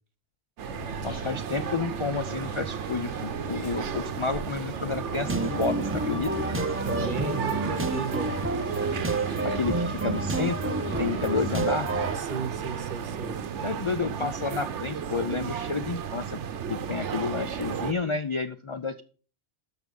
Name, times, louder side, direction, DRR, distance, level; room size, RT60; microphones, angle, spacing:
sound 1, 0.6-12.2, left 3 dB, 75° left, 2.8 m, -44 dB
sound 2, 0.6-17.9, right 8 dB, 80° right, 1.1 m, -33 dB
voice 1, 1.0-6.3 9.4-11.9 13.6-16.4 16.7-19.0, left 4 dB, 45° left, 0.4 m, -30 dB
sound 3, 5.2-12.2, right 2 dB, 15° right, 0.6 m, -30 dB
voice 2, 6.8-8.3 12.1-13.4, right 5 dB, 45° right, 1.1 m, -34 dB
13.0 x 5.1 x 5.3 m
omnidirectional pair, 1.2 m